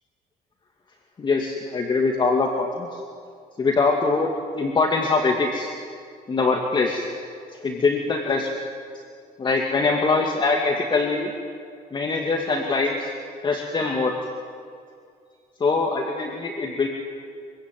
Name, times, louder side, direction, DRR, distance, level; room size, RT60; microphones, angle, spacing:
voice 1, 1.2-3.0 3.6-5.7 6.3-7.1 7.5-8.5 9.4-11.3 11.9-13.1 13.4-14.1 15.6-16.9, left 3 dB, 30° left, 2 dB, 2.5 m, -23 dB
25.5 x 24.0 x 9.5 m, 2.3 s
cardioid pair, 140°, 16 cm